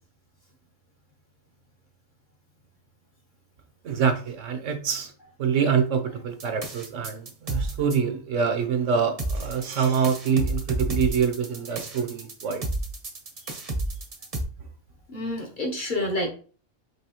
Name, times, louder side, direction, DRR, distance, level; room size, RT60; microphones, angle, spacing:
voice 1, 3.8-5.1 5.4-12.6, right 6 dB, 70° right, 6 dB, 1.0 m, -25 dB
sound 1, 6.4-8.0 9.2-14.4, right 1 dB, 35° right, 0.7 m, -31 dB
voice 2, 15.1-16.3, left 1 dB, 40° left, 1 dB, 1.0 m, -28 dB
5.5 x 3.1 x 2.9 m, 0.40 s
omnidirectional pair, 1.4 m